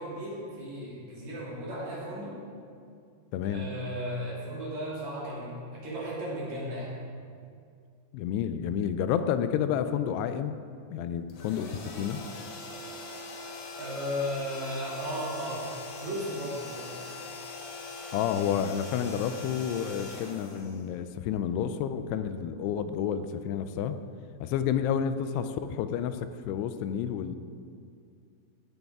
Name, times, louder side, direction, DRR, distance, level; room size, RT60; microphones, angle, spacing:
voice 1, 0.0-2.4 3.4-6.9 13.7-15.7 16.0-17.0, equal, 45° right, -7 dB, 3.8 m, -35 dB
voice 2, 3.3-3.7 8.1-10.6 10.9-12.2 18.1-24.0 24.4-27.4, left 8 dB, 85° left, 10 dB, 2.7 m, -30 dB
sound 1, 11.3-21.3, left 3 dB, 60° left, 2.6 m, -42 dB
17.0 x 10.5 x 3.6 m, 2.3 s
omnidirectional pair, 4.7 m